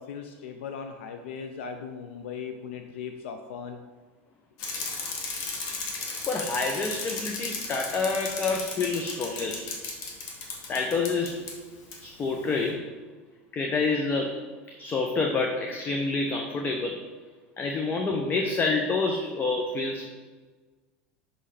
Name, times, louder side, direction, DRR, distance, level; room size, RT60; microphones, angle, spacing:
voice 1, 0.0-3.8, left 6 dB, 80° left, 6 dB, 0.6 m, -38 dB
Bicycle, 4.6-11.5 11.9-12.0, left 4 dB, 60° left, 1.6 m, -35 dB
voice 2, 6.3-9.6 10.7-11.5 12.0-12.8 13.5-14.4 14.8-17.0 17.6-20.1, left 3 dB, 30° left, 2 dB, 0.8 m, -28 dB
5.6 x 5.5 x 5.0 m, 1.4 s
hypercardioid pair, 100°, 7 cm